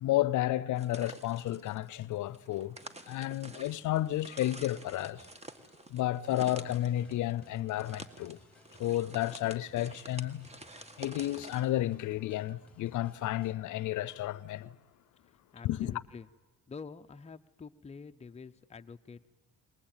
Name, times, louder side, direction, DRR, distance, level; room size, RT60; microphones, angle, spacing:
voice 1, 0.0-2.8 3.1-5.3 5.9-8.4 8.8-10.4 11.0-14.8 15.6-15.9, left 14 dB, 80° left, 0.7 m, -32 dB
sound 1, 0.8-11.7, right 2 dB, 20° right, 1.6 m, -49 dB
sound 2, 4.9-13.5, left 2 dB, 5° left, 2.1 m, -62 dB
voice 2, 15.2-16.3 16.7-19.3, left 5 dB, 20° left, 0.7 m, -47 dB
21.5 x 19.5 x 8.9 m
cardioid pair, 90°, 30 cm